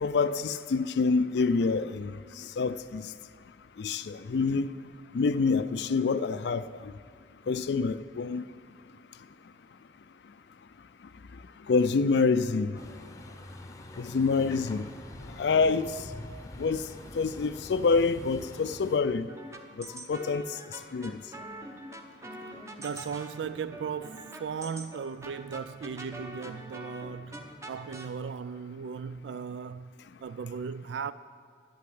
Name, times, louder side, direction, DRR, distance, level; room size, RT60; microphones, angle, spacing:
voice 1, 0.0-3.1 3.8-4.7 5.1-6.6 7.5-8.4 11.7-12.8 14.0-14.8 15.4-15.9 16.6-16.8 17.2-19.3 19.8-20.4 20.9-21.2, left 4 dB, 65° left, 0.4 m, -26 dB
Truck, 12.7-19.0, left 1 dB, 20° left, 0.8 m, -45 dB
sound 1, 19.3-28.1, right 1 dB, 15° right, 0.9 m, -45 dB
voice 2, 22.8-29.9 30.2-31.1, right 6 dB, 75° right, 0.3 m, -37 dB
11.5 x 8.5 x 9.4 m
head